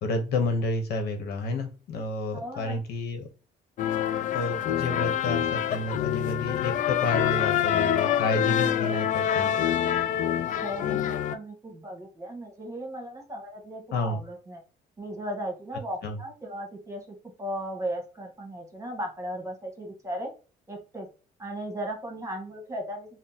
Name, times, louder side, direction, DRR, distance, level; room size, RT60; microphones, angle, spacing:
voice 1, 0.0-3.3 4.3-9.5 13.9-14.2 16.0-16.2, left 2 dB, 70° left, 6 dB, 1.0 m, -30 dB
voice 2, 2.3-2.8 10.6-14.6 15.0-20.3 20.7-21.1 21.4-23.2, equal, 20° right, 2 dB, 1.3 m, -36 dB
sound 1, 3.8-11.4, left 10 dB, 50° left, 0.4 m, -26 dB
3.6 x 2.1 x 4.2 m, 0.35 s
cardioid pair, 110°, 17 cm